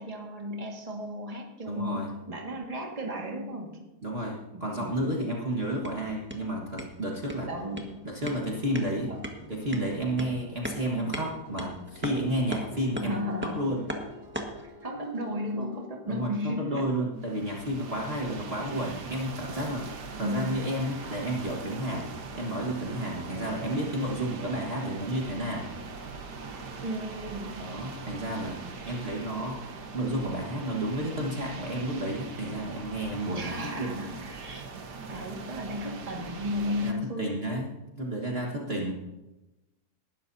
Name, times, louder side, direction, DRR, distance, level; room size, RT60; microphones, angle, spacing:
voice 1, 0.0-3.8 4.5-4.9 7.5-8.0 9.1-9.3 13.0-13.7 14.6-16.9 20.1-20.6 26.8-27.6 33.3-34.7 35.1-37.5, left 1 dB, 20° right, 0 dB, 1.9 m, -34 dB
voice 2, 1.7-2.1 4.0-7.5 8.0-9.1 9.5-13.2 13.6-13.8 16.1-19.9 20.2-25.7 27.6-34.1 36.8-37.7 38.0-38.9, right 1 dB, 40° right, -2 dB, 1.8 m, -31 dB
sound 1, 5.6-14.7, right 1 dB, 5° right, 1.4 m, -40 dB
sound 2, 8.5-15.8, left 3 dB, 60° right, 2.9 m, -48 dB
sound 3, 17.2-36.9, right 4 dB, 85° right, 1.8 m, -41 dB
19.5 x 12.5 x 2.7 m, 1.0 s
omnidirectional pair, 1.8 m